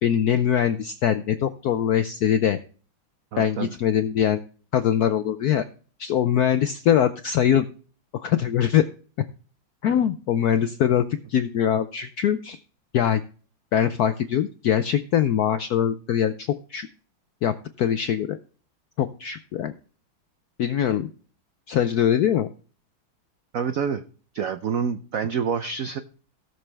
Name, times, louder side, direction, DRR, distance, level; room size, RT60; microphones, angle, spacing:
voice 1, 0.0-2.6 3.4-4.4 4.7-5.6 6.0-7.7 8.1-8.8 9.8-11.0 11.3-12.6 12.9-13.2 13.7-16.9 17.4-18.4 19.0-19.7 20.6-21.1 21.7-22.5, left 9 dB, 80° left, 11 dB, 0.8 m, -22 dB
voice 2, 3.3-3.7 23.5-24.0 24.3-26.0, right 6 dB, 80° right, 9 dB, 0.7 m, -27 dB
17.0 x 6.8 x 3.3 m, 0.40 s
omnidirectional pair, 2.3 m